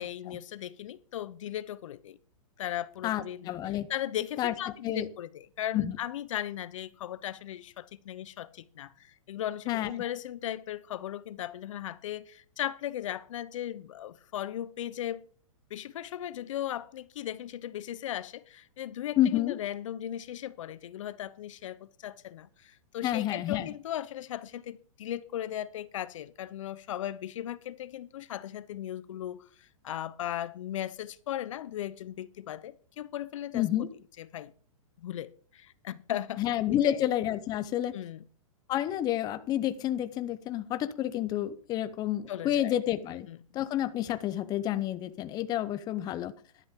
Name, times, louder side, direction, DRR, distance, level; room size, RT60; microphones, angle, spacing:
voice 1, 0.0-2.2 2.6-15.2 15.7-33.9 34.2-34.5 35.0-36.4 36.7-37.0 37.9-38.2 42.3-42.7 43.3-43.4, left 11 dB, 65° left, 0.8 m, -37 dB
voice 2, 3.0-3.9 4.4-4.5 4.8-5.1 5.7-5.9 9.7-9.9 19.2-19.5 23.0-23.7 33.5-33.9 36.4-37.9 38.7-43.3 43.5-46.3, left 12 dB, 20° left, 0.7 m, -29 dB
13.0 x 12.0 x 3.7 m
hypercardioid pair, 145°, 18 cm